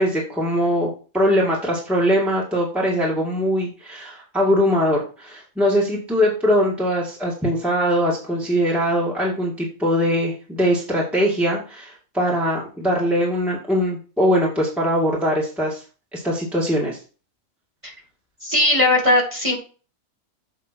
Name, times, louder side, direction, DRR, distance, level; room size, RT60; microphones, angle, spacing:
voice 1, 0.0-15.8 16.1-17.0, equal, ahead, -4 dB, 2.2 m, -21 dB
voice 2, 18.4-19.6, left 1 dB, 20° right, 0 dB, 2.7 m, -18 dB
7.6 x 5.8 x 4.5 m, 0.36 s
omnidirectional pair, 1.6 m